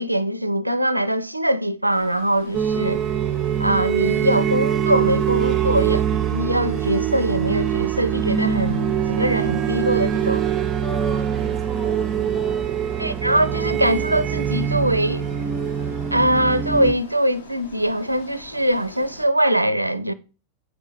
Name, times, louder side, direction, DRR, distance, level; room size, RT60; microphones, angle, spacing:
voice 1, 0.0-3.0 3.6-10.4 13.0-15.3 16.1-20.1, right 1 dB, 85° right, 0.4 m, -22 dB
sound 1, 1.9-19.3, left 3 dB, 65° left, 1.4 m, -45 dB
sound 2, 2.5-16.9, right 9 dB, 25° right, 0.5 m, -23 dB
voice 2, 10.8-13.2, left 1 dB, 10° left, 1.0 m, -37 dB
8.3 x 5.1 x 3.8 m
figure-of-eight pair, 90°, 0 cm